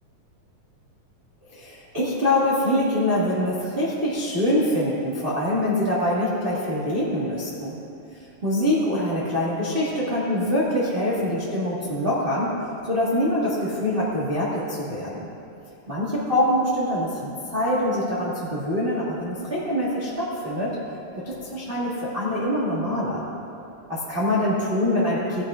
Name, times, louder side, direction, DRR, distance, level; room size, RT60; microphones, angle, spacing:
voice 1, 1.5-7.8 8.4-12.5 12.9-15.3 15.9-20.8 21.2-23.3 23.9-25.4, left 1 dB, 40° right, -7 dB, 0.8 m, -24 dB
18.0 x 10.5 x 2.5 m, 2.7 s
omnidirectional pair, 3.9 m